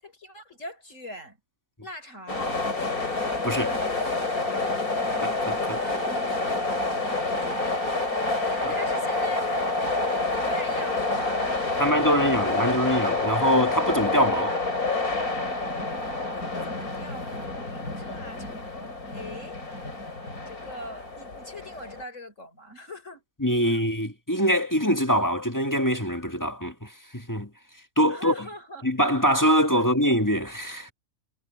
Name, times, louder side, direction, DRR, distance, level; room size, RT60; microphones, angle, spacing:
voice 1, 0.0-1.4 1.8-2.6 5.8-7.9 8.4-9.9 10.3-12.8 16.3-19.6 20.5-23.2 23.6-23.9 28.1-28.9, equal, 60° left, 6.6 m, -43 dB
sound 1, 2.3-22.0, left 2 dB, 85° left, 5.3 m, -28 dB
voice 2, 3.4-4.0 5.2-5.8 8.6-8.7 11.8-14.6 23.4-27.5 28.0-28.5 28.8-30.9, equal, 15° left, 1.6 m, -24 dB
omnidirectional pair, 1.5 m